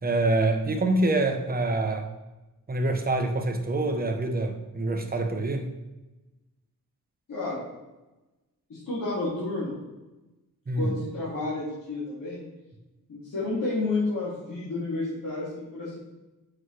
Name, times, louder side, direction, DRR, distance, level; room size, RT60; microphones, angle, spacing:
voice 1, 0.0-2.1 2.7-5.7 10.7-10.9, right 2 dB, 25° right, 4 dB, 0.9 m, -26 dB
voice 2, 7.3-7.6 8.7-9.8 10.7-12.4 13.1-16.0, left 2 dB, 70° left, -10 dB, 2.7 m, -31 dB
7.7 x 6.1 x 3.3 m, 1.0 s
wide cardioid pair, 160°, 34 cm